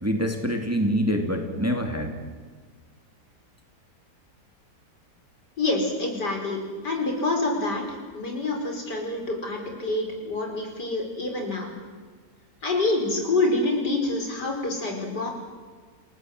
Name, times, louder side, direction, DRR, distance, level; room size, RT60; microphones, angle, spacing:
voice 1, 0.0-2.1, equal, 10° right, 3 dB, 2.6 m, -25 dB
voice 2, 5.6-7.9 8.1-11.7 12.6-15.3, left 2 dB, 75° left, 2 dB, 5.4 m, -27 dB
29.0 x 18.0 x 7.9 m, 1.5 s
omnidirectional pair, 1.8 m